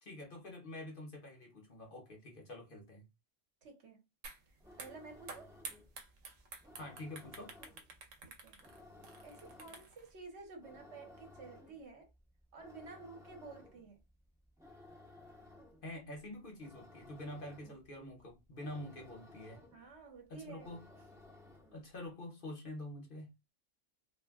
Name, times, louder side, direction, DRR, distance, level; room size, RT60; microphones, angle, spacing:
voice 1, 0.0-3.1 6.8-7.5 15.8-19.6 20.3-20.9 21.7-23.3, left 1 dB, 50° left, 0.9 m, -47 dB
voice 2, 3.6-4.0 4.8-5.5 8.2-8.6 9.2-12.1 12.5-14.0 19.7-20.7, right 3 dB, 65° right, 1.1 m, -52 dB
sound 1, 4.2-4.4 4.7-10.1, right 4 dB, 85° right, 1.0 m, -50 dB
sound 2, 4.5-21.9, left 2 dB, 5° right, 0.5 m, -58 dB
2.5 x 2.1 x 3.4 m
omnidirectional pair, 1.3 m